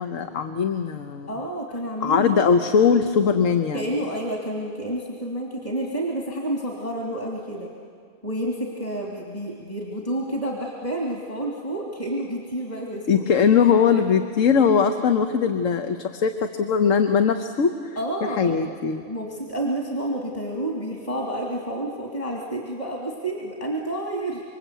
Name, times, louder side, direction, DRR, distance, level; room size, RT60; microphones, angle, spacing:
voice 1, 0.0-1.3 2.0-3.8 13.1-18.0 18.4-19.0, left 6 dB, 70° left, 7 dB, 1.3 m, -20 dB
voice 2, 1.3-2.4 3.7-7.7 8.2-13.4 13.9-14.0 17.9-24.4, right 1 dB, 25° left, -1 dB, 3.1 m, -30 dB
27.0 x 25.0 x 8.4 m, 2.2 s
omnidirectional pair, 1.4 m